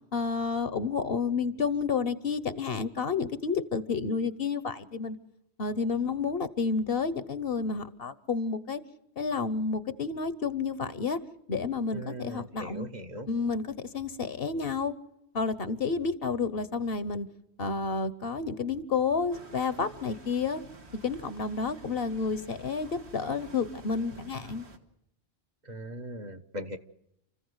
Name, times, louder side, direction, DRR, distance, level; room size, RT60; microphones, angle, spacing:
voice 1, 0.1-5.2 5.6-8.8 9.2-11.2 11.5-12.9 13.3-14.9 15.3-17.3 17.6-20.6 21.0-24.6, left 5 dB, 60° left, 14 dB, 1.2 m, -30 dB
voice 2, 11.9-13.3 25.7-26.8, right 1 dB, 40° right, 6 dB, 1.1 m, -39 dB
sound 1, 19.3-24.8, right 2 dB, 80° right, 2.1 m, -50 dB
29.5 x 15.0 x 8.0 m, 0.82 s
omnidirectional pair, 1.1 m